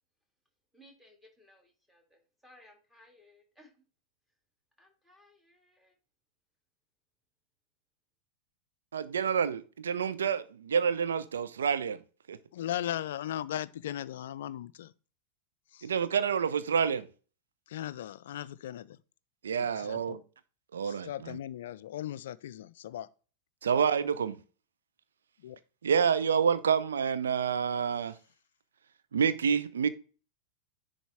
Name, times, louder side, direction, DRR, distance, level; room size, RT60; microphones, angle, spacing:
voice 1, 0.7-3.7 4.8-5.9, left 1 dB, 5° right, 2.0 m, -60 dB
voice 2, 8.9-12.0 12.3-12.4 15.8-17.1 19.4-20.2 20.7-21.4 23.6-24.4 25.8-28.1 29.1-29.9, right 7 dB, 65° right, 0.6 m, -28 dB
voice 3, 12.5-14.9 15.7-15.9 17.7-19.0 19.6-20.2 20.8-23.1 25.4-25.6, left 11 dB, 60° left, 0.4 m, -38 dB
10.0 x 3.8 x 3.4 m
figure-of-eight pair, 90°, 0 cm